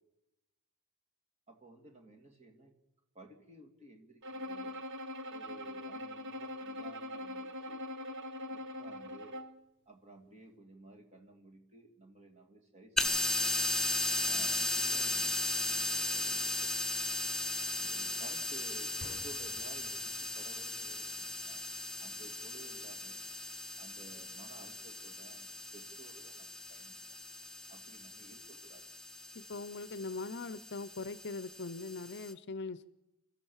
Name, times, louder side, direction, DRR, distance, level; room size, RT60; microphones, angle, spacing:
voice 1, 1.5-2.7 3.1-4.8 5.3-7.8 8.4-9.4 9.9-13.5 14.2-16.9 17.8-21.7 22.0-23.2 23.8-27.0 27.7-28.8, right 3 dB, 30° right, 3 dB, 2.6 m, -55 dB
Bowed string instrument, 4.2-9.6, left 1 dB, 55° right, 1.2 m, -42 dB
sound 1, 13.0-32.3, left 2 dB, ahead, 0.8 m, -37 dB
sound 2, 19.0-22.4, left 2 dB, 30° left, 1.1 m, -55 dB
voice 2, 29.3-32.9, left 3 dB, 50° left, 15 dB, 0.7 m, -41 dB
29.5 x 13.5 x 7.2 m, 0.98 s
head